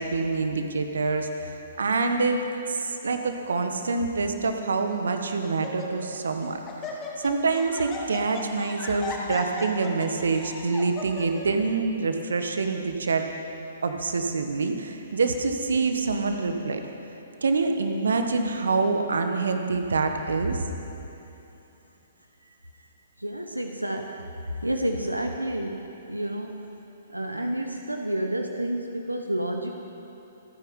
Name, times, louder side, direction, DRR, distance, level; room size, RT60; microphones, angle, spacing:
voice 1, 0.0-2.4 2.7-6.6 7.2-13.3 13.8-16.8 17.4-20.6, right 4 dB, 65° right, 6 dB, 1.4 m, -26 dB
Laughter, 3.1-3.5 4.3-4.4 4.9-5.1 5.4-6.2 6.4-11.5, left 3 dB, 20° left, 2.6 m, -37 dB
voice 2, 23.2-24.2 24.6-26.6 27.1-29.8, right 1 dB, 90° right, 4 dB, 1.1 m, -30 dB
27.0 x 9.5 x 5.5 m, 2.9 s
figure-of-eight pair, 120°, 0 cm